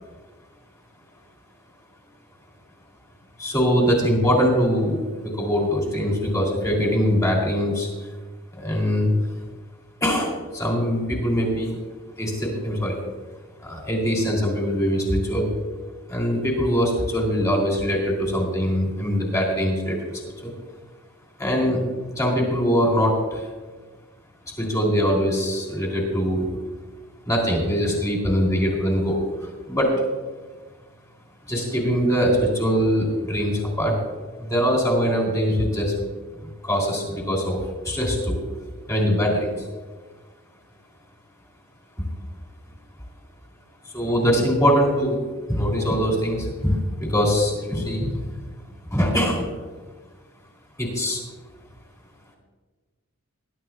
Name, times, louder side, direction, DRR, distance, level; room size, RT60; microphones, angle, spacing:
voice 1, 3.4-7.9 8.5-9.1 10.0-11.8 12.2-13.0 13.6-15.5 16.1-20.5 21.4-21.8 22.2-23.5 24.6-26.5 27.3-29.2 29.7-29.9 31.5-34.0 34.4-35.9 36.4-37.6 37.8-38.4 38.9-39.7 43.9-45.2 45.5-48.2 48.9-49.5 50.8-51.2, equal, 15° left, -1 dB, 3.0 m, -22 dB
21.0 x 11.5 x 2.4 m, 1.4 s
head